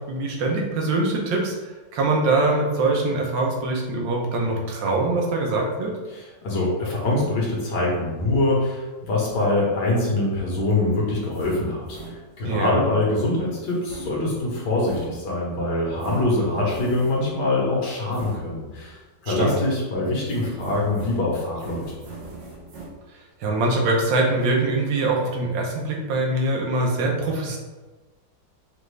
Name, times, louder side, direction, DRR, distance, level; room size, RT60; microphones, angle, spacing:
voice 1, 0.1-5.9 12.4-12.8 19.3-19.5 23.4-27.6, right 2 dB, 85° right, -1 dB, 1.5 m, -23 dB
voice 2, 6.1-12.0 12.4-19.0 19.2-21.8, left 2 dB, 70° left, -4 dB, 1.7 m, -24 dB
sound 1, 11.1-12.6 13.6-15.6 16.0-17.4 18.1-18.9 19.2-19.9 20.3-22.9, right 3 dB, 50° right, 1.1 m, -41 dB
5.3 x 2.5 x 3.2 m, 1.2 s
omnidirectional pair, 2.0 m